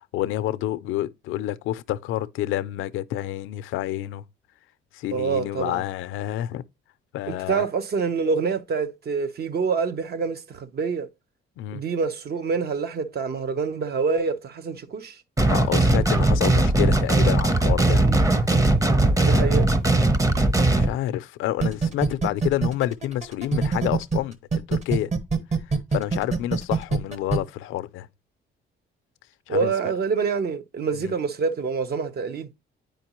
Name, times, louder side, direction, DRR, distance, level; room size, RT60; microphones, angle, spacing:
voice 1, 0.1-4.3 4.9-6.6 7.1-7.6 11.6-11.8 15.5-18.1 19.0-19.6 20.7-25.1 25.9-28.1 29.5-29.7 30.9-31.1, left 14 dB, 90° left, 0.5 m, -28 dB
voice 2, 5.1-5.8 7.3-11.1 11.7-15.2 17.9-18.2 19.2-19.7 29.5-32.5, right 5 dB, 55° right, 0.8 m, -26 dB
sound 1, 15.4-20.9, right 2 dB, 15° right, 0.7 m, -19 dB
sound 2, 21.6-24.2 24.5-27.4, right 5 dB, 35° right, 1.1 m, -23 dB
9.0 x 5.1 x 2.9 m
cardioid pair, 90°, 20 cm